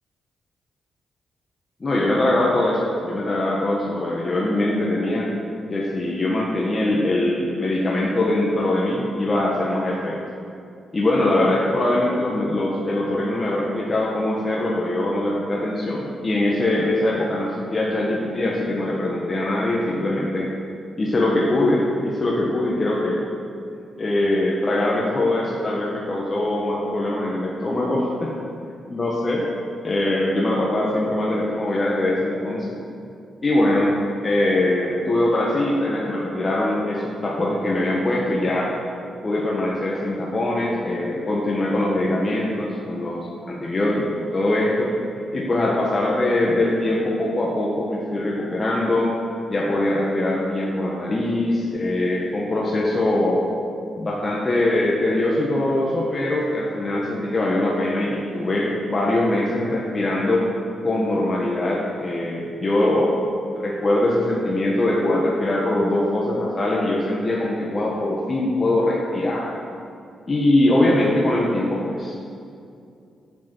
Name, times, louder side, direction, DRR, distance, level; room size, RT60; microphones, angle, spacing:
voice 1, 1.8-5.3 5.7-10.2 10.9-20.5 21.0-23.2 24.0-28.3 28.9-29.4 29.8-32.8 33.4-33.9 34.2-38.7 39.2-44.9 45.3-49.2 49.5-53.4 54.0-60.5 60.8-69.5 70.3-72.2, left 1 dB, 35° left, -4 dB, 1.5 m, -22 dB
8.9 x 8.0 x 6.3 m, 2.5 s
cardioid pair, 70°, 0 cm